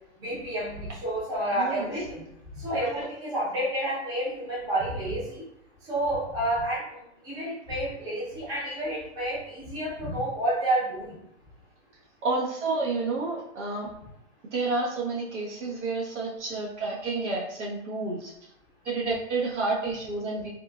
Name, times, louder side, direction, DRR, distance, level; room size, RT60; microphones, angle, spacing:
voice 1, 0.2-2.2 2.6-5.4 5.9-6.8 7.2-11.1, right 1 dB, 10° right, -8 dB, 0.7 m, -29 dB
voice 2, 1.5-1.9 2.8-3.1 12.2-13.9 14.5-18.3 18.8-20.5, right 3 dB, 80° right, -3 dB, 1.2 m, -30 dB
3.6 x 2.4 x 2.3 m, 0.79 s
hypercardioid pair, 155°, 35 cm